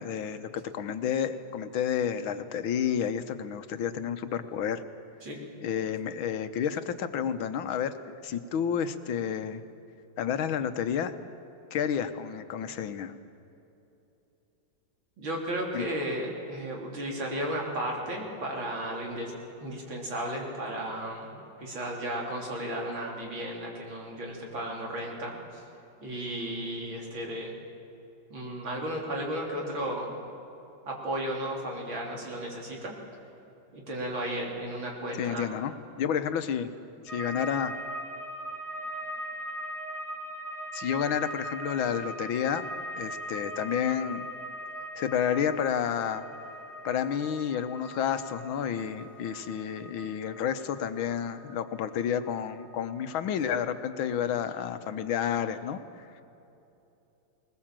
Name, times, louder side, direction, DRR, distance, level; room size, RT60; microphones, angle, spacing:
voice 1, 0.0-4.8 5.6-7.9 8.2-9.6 10.2-11.1 11.7-13.1 15.7-15.9 35.2-36.7 37.0-37.7 40.7-42.7 43.0-44.3 45.0-46.2 46.8-55.8, left 8 dB, 80° left, 10 dB, 1.7 m, -30 dB
voice 2, 15.2-19.3 19.6-25.6 26.0-27.6 28.3-30.2 30.9-32.9 33.7-35.5, right 1 dB, 75° right, -1 dB, 4.1 m, -34 dB
sound 1, 37.1-54.2 54.5-55.2, right 1 dB, ahead, 2.0 m, -40 dB
20.5 x 20.5 x 7.5 m, 2.9 s
omnidirectional pair, 2.2 m